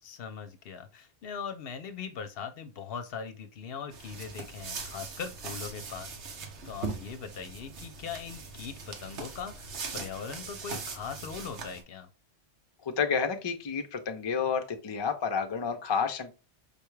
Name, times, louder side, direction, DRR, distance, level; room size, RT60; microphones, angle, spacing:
voice 1, 0.0-12.1, left 6 dB, 65° left, 0.7 m, -40 dB
sound 1, 3.9-11.8, right 4 dB, 90° right, 1.2 m, -40 dB
voice 2, 12.9-16.3, left 6 dB, 40° left, 0.4 m, -30 dB
5.1 x 2.3 x 3.1 m
omnidirectional pair, 1.2 m